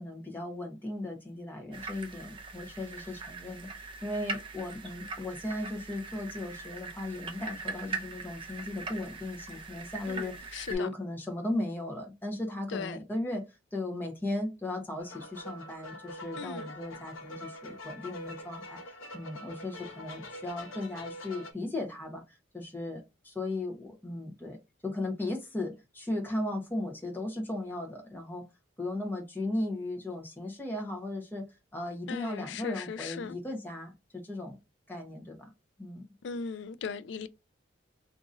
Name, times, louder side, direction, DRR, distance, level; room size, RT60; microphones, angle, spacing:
voice 1, 0.0-13.4 13.7-24.6 24.8-28.4 28.8-31.5 31.7-34.6 34.9-35.5 35.8-36.0, left 2 dB, 10° left, 0.8 m, -36 dB
sound 1, 1.7-10.8, right 3 dB, 25° right, 0.4 m, -41 dB
voice 2, 10.1-10.9 12.7-13.0 16.4-16.7 32.1-33.4 36.2-37.3, left 5 dB, 65° left, 0.3 m, -38 dB
sound 2, 15.0-21.5, left 1 dB, 85° left, 0.9 m, -44 dB
2.8 x 2.5 x 3.7 m
head